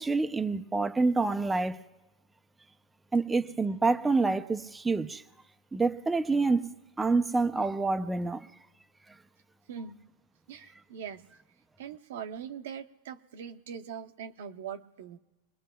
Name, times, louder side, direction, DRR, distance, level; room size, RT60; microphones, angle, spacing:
voice 1, 0.0-1.8 3.1-5.2 5.7-8.5, right 3 dB, 10° right, 0.5 m, -27 dB
voice 2, 9.7-10.0 10.5-11.2 11.8-15.2, right 7 dB, 85° right, 0.8 m, -41 dB
26.5 x 20.5 x 2.3 m
supercardioid pair, 140°, 0 cm